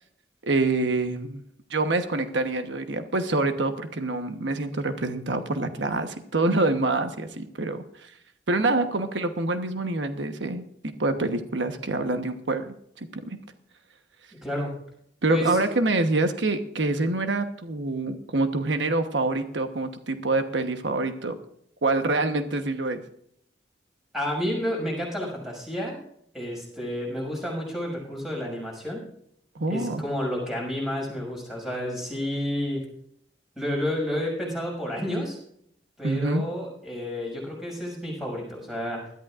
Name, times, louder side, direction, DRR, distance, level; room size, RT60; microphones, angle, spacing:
voice 1, 0.4-1.4 1.7-8.1 8.5-12.7 15.2-21.4 21.8-23.0 29.5-30.0 36.0-36.4, right 2 dB, 90° right, 7 dB, 1.1 m, -26 dB
voice 2, 15.3-15.7 24.1-26.0 26.3-29.0 29.7-32.8 33.6-35.4 36.0-39.0, equal, ahead, -2 dB, 6.3 m, -30 dB
20.5 x 13.5 x 2.5 m, 0.71 s
head